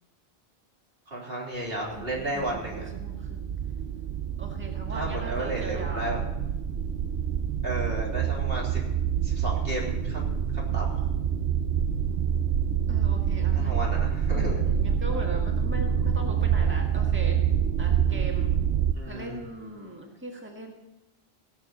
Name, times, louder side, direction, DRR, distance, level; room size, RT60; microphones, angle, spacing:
voice 1, 1.1-2.8 4.9-6.2 7.6-8.8 9.2-11.0 13.5-14.6 18.9-19.4, right 1 dB, 70° right, -3 dB, 3.6 m, -33 dB
voice 2, 1.9-3.5 4.4-6.2 12.9-13.9 14.3-17.4 17.8-18.5 19.0-20.7, right 1 dB, 10° right, 1 dB, 1.6 m, -39 dB
sound 1, 1.9-18.9, right 8 dB, 90° right, 1.0 m, -27 dB
17.5 x 6.8 x 7.7 m, 0.92 s
omnidirectional pair, 1.0 m